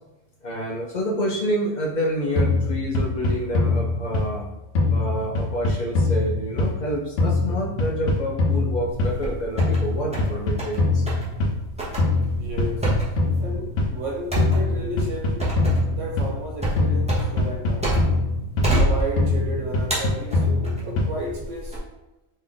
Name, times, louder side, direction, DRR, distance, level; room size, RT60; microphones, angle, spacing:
voice 1, 0.4-4.5 4.9-11.1, equal, 55° left, 0 dB, 0.5 m, -28 dB
sound 1, 2.4-4.4 4.7-6.9 7.2-9.3 9.6-11.7 12.0-14.0 14.4-16.5 16.8-18.9 19.2-21.3, left 2 dB, 70° left, 1.0 m, -23 dB
sound 2, 8.9-9.8 10.1-10.8 11.1-11.3 11.8-18.3 18.6-19.5 19.9-20.8 21.4-21.8, right 1 dB, 5° right, 0.7 m, -26 dB
voice 2, 12.4-13.0 13.4-15.6 15.9-17.9 18.7-21.9, right 1 dB, 75° right, -1 dB, 0.9 m, -33 dB
3.1 x 2.6 x 3.7 m, 0.99 s
omnidirectional pair, 1.3 m